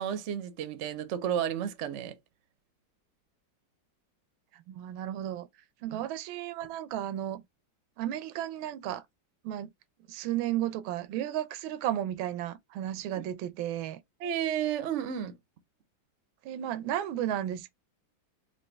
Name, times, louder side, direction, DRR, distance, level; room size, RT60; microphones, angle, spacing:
voice 1, 0.0-2.1 5.9-6.1 14.2-15.4, right 9 dB, 65° right, 0.7 m, -32 dB
voice 2, 4.5-5.5 5.8-7.4 8.0-9.0 9.4-9.7 10.1-14.0 16.4-17.7, right 12 dB, 85° right, 1.4 m, -33 dB
4.2 x 2.8 x 3.2 m
omnidirectional pair, 2.2 m